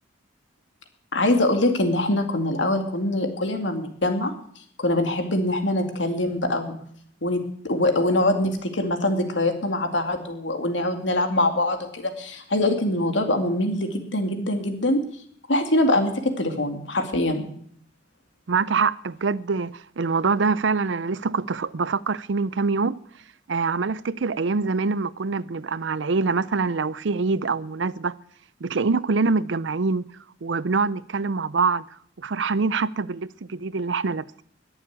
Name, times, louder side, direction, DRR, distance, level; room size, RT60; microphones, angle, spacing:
voice 1, 1.1-4.3 4.8-6.8 7.2-15.0 15.5-17.5, left 1 dB, 85° left, 2.4 m, -23 dB
voice 2, 18.5-23.0 23.5-28.1 28.6-30.1 30.4-31.8 32.2-34.4, right 4 dB, 80° right, 0.6 m, -24 dB
21.0 x 7.2 x 8.3 m
head